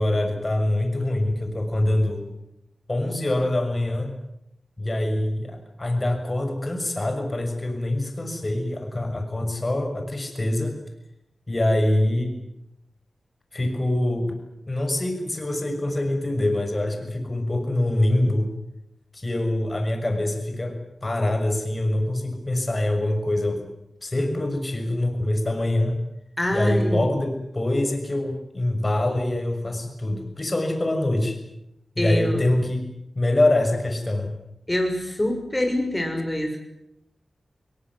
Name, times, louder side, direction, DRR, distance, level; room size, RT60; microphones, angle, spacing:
voice 1, 0.0-2.2 2.9-4.1 4.8-10.8 11.5-12.4 13.5-14.4 14.7-18.5 19.1-20.8 21.0-23.6 24.0-26.0 26.5-31.4 32.0-32.8 33.1-34.3, left 1 dB, 35° left, 5 dB, 6.5 m, -24 dB
voice 2, 26.4-27.1 32.0-32.4 34.7-36.6, left 1 dB, 20° left, 4 dB, 6.3 m, -25 dB
22.0 x 20.5 x 9.6 m, 0.83 s
cardioid pair, 45°, 0 cm